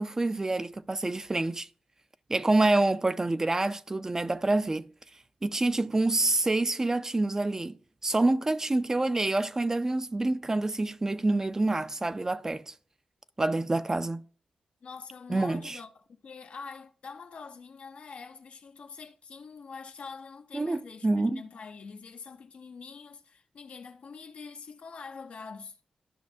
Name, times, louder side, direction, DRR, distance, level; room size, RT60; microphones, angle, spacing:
voice 1, 0.0-1.7 2.3-4.9 5.4-12.7 13.4-14.2 15.3-15.8 20.5-21.4, right 2 dB, 25° right, 0.3 m, -27 dB
voice 2, 14.8-15.9 16.2-25.8, left 5 dB, 65° left, 0.5 m, -45 dB
12.5 x 5.7 x 2.6 m
cardioid pair, 90°, 2 cm